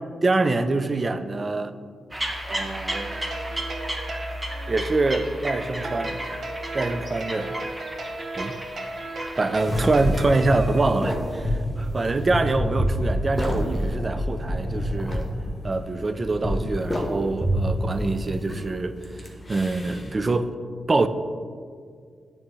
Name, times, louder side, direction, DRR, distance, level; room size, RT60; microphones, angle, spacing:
voice 1, 0.2-1.7 2.5-3.1 4.7-6.2 6.7-7.5 8.3-8.6 9.2-11.5 11.8-15.3 15.6-19.0 19.5-20.5 20.9-21.1, right 3 dB, 35° right, 0.3 m, -25 dB
sound 1, 2.1-9.6, right 1 dB, 15° right, 0.8 m, -33 dB
sound 2, 2.9-11.3, right 2 dB, 55° right, 0.7 m, -35 dB
sound 3, 9.6-20.2, equal, 15° left, 0.9 m, -28 dB
9.3 x 3.5 x 3.1 m
cardioid pair, 80°, 0 cm